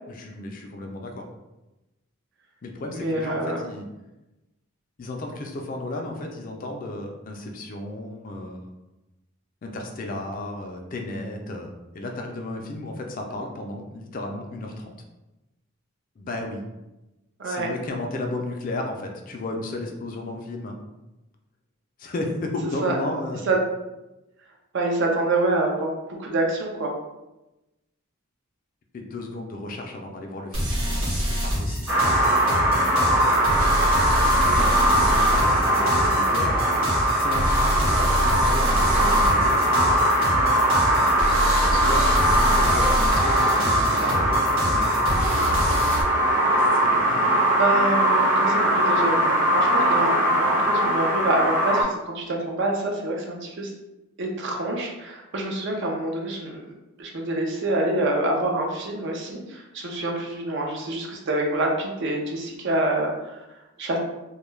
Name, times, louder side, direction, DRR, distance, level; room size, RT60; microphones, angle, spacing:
voice 1, 0.1-1.3 2.6-3.9 5.0-8.7 9.6-14.9 16.2-16.6 17.4-20.8 22.0-23.4 28.9-32.0 32.6-32.9 34.2-36.9 37.2-39.7 41.6-45.3 46.6-47.3, left 2 dB, 40° left, 2 dB, 0.4 m, -34 dB
voice 2, 2.9-3.6 17.4-17.7 22.8-22.9 23.5-23.6 24.7-25.9 26.2-26.9 34.5-34.6 47.6-53.7 54.2-56.6 57.0-63.1 63.8-64.0, right 2 dB, 60° right, 1 dB, 0.5 m, -26 dB
sound 1, 30.5-46.0, equal, 80° right, 0.9 m, -26 dB
sound 2, 31.9-51.8, right 1 dB, 10° right, 0.6 m, -21 dB
2.2 x 2.2 x 3.1 m, 1.0 s
head